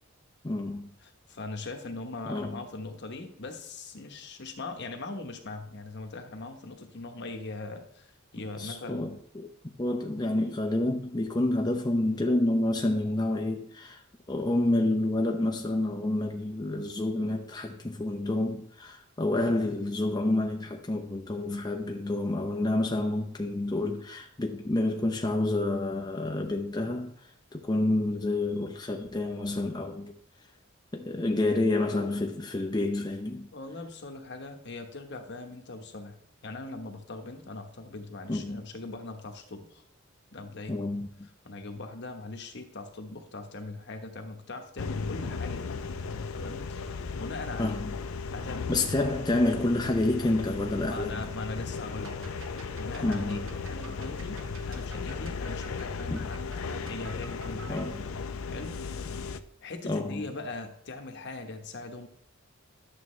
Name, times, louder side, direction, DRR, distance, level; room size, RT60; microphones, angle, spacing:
voice 1, 0.4-0.9 2.3-2.6 8.6-9.5 9.8-14.0 14.3-27.1 27.5-30.2 30.9-33.5 38.3-38.6 40.7-41.3 47.6-47.9 48.7-51.2 53.0-53.4 56.1-56.3 57.7-58.0 59.9-60.2, left 2 dB, 20° left, 0.6 m, -29 dB
voice 2, 1.3-9.2 33.5-36.2 36.4-39.8 40.3-40.8 41.4-46.0 46.3-47.8 48.3-48.9 50.9-52.3 52.8-56.4 56.9-57.9 58.5-59.0 59.6-62.1, left 3 dB, 55° left, 1.0 m, -40 dB
sound 1, 44.8-59.4, left 4 dB, 85° left, 0.6 m, -36 dB
sound 2, 52.0-57.9, right 4 dB, 75° right, 1.1 m, -50 dB
11.5 x 7.2 x 3.2 m
head